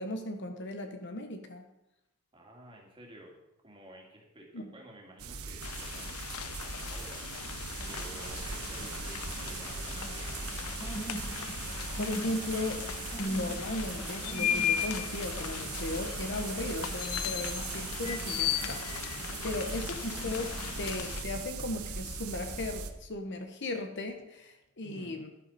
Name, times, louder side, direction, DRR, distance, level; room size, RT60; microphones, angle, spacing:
voice 1, 0.0-1.6 4.5-4.7 12.0-12.8 13.2-25.3, left 2 dB, 55° left, 5 dB, 1.3 m, -36 dB
voice 2, 2.3-3.4 3.6-10.3 24.8-25.2, right 1 dB, 25° right, -1 dB, 2.7 m, -53 dB
sound 1, 5.2-22.9, right 5 dB, 80° right, 1.2 m, -40 dB
sound 2, 5.6-21.2, left 10 dB, 70° left, 0.5 m, -37 dB
sound 3, 7.8-21.0, equal, 30° left, 2.2 m, -45 dB
13.0 x 11.0 x 4.4 m, 0.86 s
head